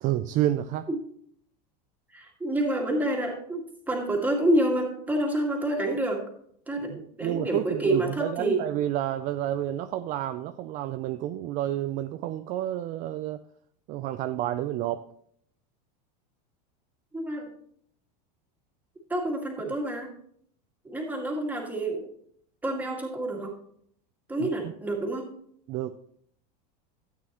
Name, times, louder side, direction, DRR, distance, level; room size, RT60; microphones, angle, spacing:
voice 1, 0.0-0.9 6.9-13.4 13.9-15.0 19.7-19.8 24.4-24.7 25.7-26.0, right 13 dB, 40° right, 9 dB, 0.4 m, -30 dB
voice 2, 2.1-6.2 6.7-8.6 17.1-17.5 19.1-20.1 20.8-22.1 22.6-23.6 24.3-25.3, right 1 dB, 10° right, 0 dB, 2.0 m, -28 dB
12.5 x 8.5 x 3.0 m, 0.65 s
supercardioid pair, 145°, 21 cm